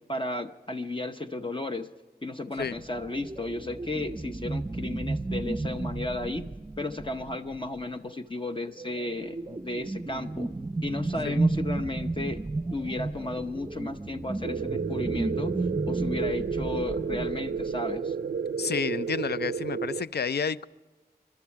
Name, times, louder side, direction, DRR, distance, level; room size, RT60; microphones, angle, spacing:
voice 1, 0.1-1.9 2.2-6.5 6.8-10.5 10.8-15.5 15.9-18.1, left 2 dB, 30° left, 6 dB, 0.7 m, -34 dB
sound 1, 2.6-7.8 8.7-18.0, right 2 dB, 25° right, 0.5 m, -33 dB
sound 2, 14.4-20.0, right 6 dB, 85° right, 0.4 m, -31 dB
voice 2, 18.6-20.7, left 6 dB, 80° left, 16 dB, 0.4 m, -30 dB
25.0 x 12.0 x 4.6 m, 1.3 s
wide cardioid pair, 50°, 17 cm